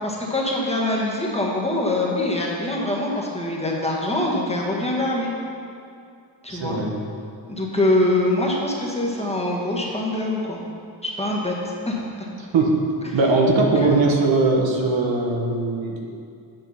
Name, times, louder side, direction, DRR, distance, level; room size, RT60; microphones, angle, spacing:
voice 1, 0.0-5.3 6.4-6.8 7.5-10.6 11.0-12.3 13.0-13.2 13.7-13.9, left 1 dB, 15° left, -3 dB, 1.6 m, -24 dB
voice 2, 6.5-7.0 12.5-12.8 13.1-16.3, right 3 dB, 65° right, 0 dB, 1.3 m, -20 dB
9.1 x 5.3 x 5.7 m, 2.4 s
cardioid pair, 90°, 48 cm